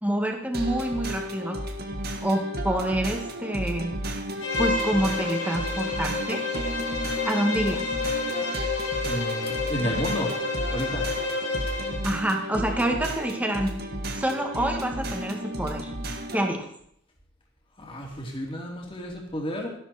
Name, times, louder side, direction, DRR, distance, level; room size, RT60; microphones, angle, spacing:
voice 1, 0.0-1.6 2.2-4.0 4.6-6.4 7.2-7.8 12.0-13.7 14.1-15.9 16.3-16.7, right 1 dB, 10° right, 2 dB, 2.1 m, -27 dB
sound 1, 0.5-16.5, right 1 dB, 55° right, 1.6 m, -33 dB
Bowed string instrument, 4.4-12.1, left 3 dB, 70° left, 4.4 m, -29 dB
voice 2, 9.0-10.3 10.7-11.1 17.8-19.7, equal, 30° left, -1 dB, 3.1 m, -31 dB
13.5 x 12.0 x 4.4 m, 0.69 s
head